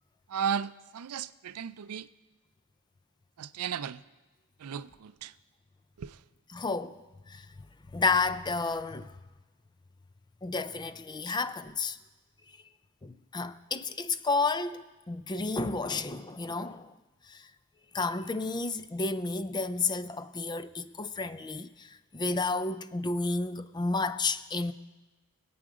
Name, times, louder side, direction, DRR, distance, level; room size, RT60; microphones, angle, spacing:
voice 1, 0.3-2.1 3.4-4.0 4.6-5.3 6.0-6.2, right 7 dB, 85° right, 0.4 m, -35 dB
voice 2, 6.5-7.0 7.3-7.5 7.9-9.1 10.4-12.0 13.0-16.9 17.2-17.5 17.9-24.7, left 3 dB, 20° left, 0.4 m, -31 dB
22.0 x 8.6 x 4.9 m
head